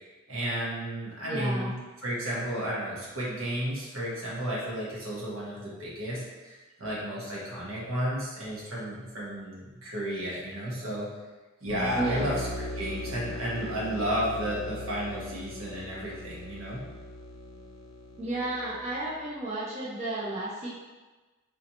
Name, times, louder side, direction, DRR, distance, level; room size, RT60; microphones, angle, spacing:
voice 1, 0.3-1.7 2.0-11.1 11.6-12.5 12.7-16.8, equal, 85° right, -6 dB, 1.1 m, -32 dB
voice 2, 1.2-1.7 12.0-12.3 18.2-20.7, right 2 dB, 30° right, -6 dB, 0.5 m, -32 dB
sound 1, 11.7-19.2, left 1 dB, 85° left, 0.4 m, -39 dB
4.1 x 2.8 x 2.8 m, 1.2 s
head